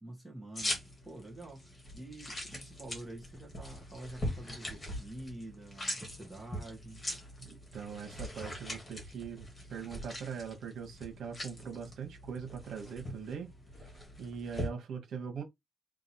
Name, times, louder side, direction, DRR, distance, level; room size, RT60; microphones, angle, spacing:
voice 1, 0.0-7.0, right 1 dB, 5° right, 1.4 m, -47 dB
sound 1, 0.6-14.7, left 1 dB, 15° left, 1.8 m, -42 dB
voice 2, 7.4-13.5 14.2-15.4, right 6 dB, 55° right, 1.8 m, -41 dB
3.8 x 2.8 x 4.3 m
cardioid pair, 170°, 0 cm